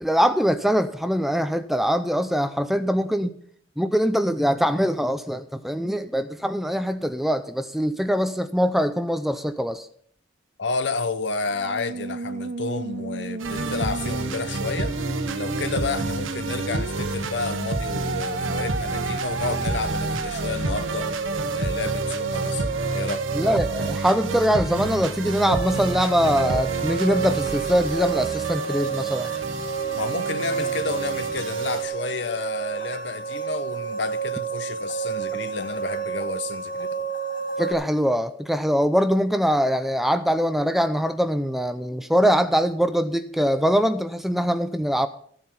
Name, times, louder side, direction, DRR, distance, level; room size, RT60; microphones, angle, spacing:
voice 1, 0.0-3.4 3.8-9.9 23.3-29.3 37.6-45.1, equal, ahead, 0.5 m, -23 dB
voice 2, 10.6-14.9 15.3-21.1 21.5-22.6 22.9-23.3 29.9-37.1, left 4 dB, 60° left, 0.9 m, -31 dB
Musical instrument, 11.5-24.5, right 4 dB, 45° right, 0.6 m, -32 dB
sound 1, 13.4-31.8, right 2 dB, 85° right, 1.1 m, -30 dB
sound 2, 25.5-37.7, right 6 dB, 45° left, 1.4 m, -29 dB
14.5 x 7.7 x 5.6 m
head